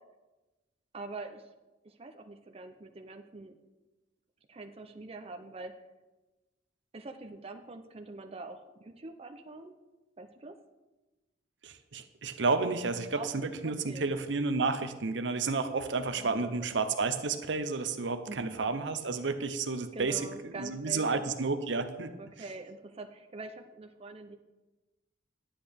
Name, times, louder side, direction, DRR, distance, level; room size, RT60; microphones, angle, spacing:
voice 1, 0.9-1.5 1.8-3.6 4.5-5.7 6.9-9.7 10.2-10.6 13.2-14.1 16.1-16.7 18.3-18.6 19.9-21.2 22.2-24.4, right 2 dB, 30° right, 6 dB, 0.6 m, -44 dB
voice 2, 11.6-22.1, right 4 dB, 70° right, 9 dB, 0.7 m, -31 dB
10.0 x 9.9 x 3.5 m, 1.1 s
head